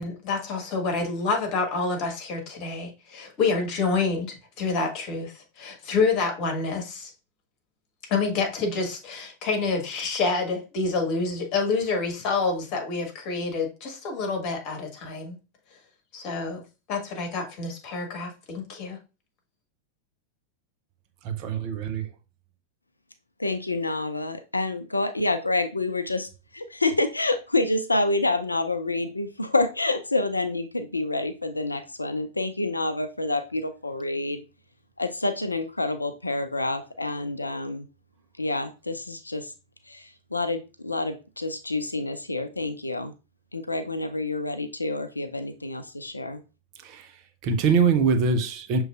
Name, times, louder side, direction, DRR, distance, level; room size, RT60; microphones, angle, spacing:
voice 1, 0.0-7.1 8.1-15.4 16.1-16.6 16.9-19.0, left 4 dB, 40° left, 1.4 m, -28 dB
voice 2, 21.2-22.1 46.8-47.0 47.4-48.8, right 5 dB, 40° right, 0.6 m, -23 dB
voice 3, 23.4-34.4 35.0-37.9 38.4-39.5 39.9-43.1 43.5-46.4, left 2 dB, 80° left, 0.4 m, -28 dB
6.4 x 3.1 x 2.4 m
figure-of-eight pair, 90°, 0 cm